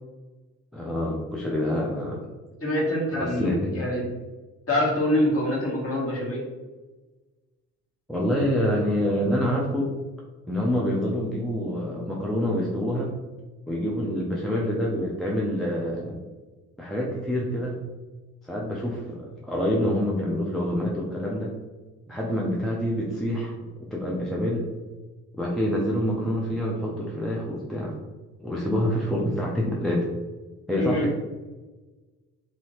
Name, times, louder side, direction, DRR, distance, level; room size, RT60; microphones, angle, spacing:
voice 1, 0.7-2.3 3.1-3.7 8.1-9.9 10.5-13.1 13.7-16.2 16.8-17.8 18.5-21.5 22.1-24.6 25.3-27.9 28.4-30.1 30.7-31.1, equal, ahead, -4 dB, 0.4 m, -26 dB
voice 2, 2.6-4.0 4.7-6.4 30.7-31.1, left 1 dB, 30° left, -3 dB, 1.2 m, -25 dB
2.8 x 2.7 x 3.0 m, 1.2 s
figure-of-eight pair, 50°, 46 cm